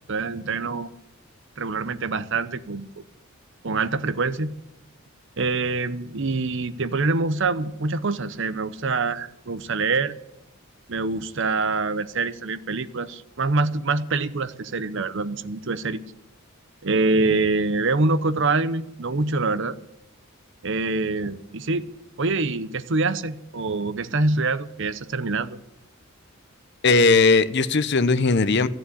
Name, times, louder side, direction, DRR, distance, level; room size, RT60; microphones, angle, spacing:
voice 1, 0.1-0.9 1.6-3.0 3.6-4.5 5.4-10.1 10.9-16.0 16.8-19.8 20.6-21.9 22.2-25.6, right 3 dB, 60° right, 0.8 m, -25 dB
voice 2, 26.8-28.7, left 3 dB, 50° left, 0.8 m, -18 dB
14.5 x 7.8 x 9.8 m
head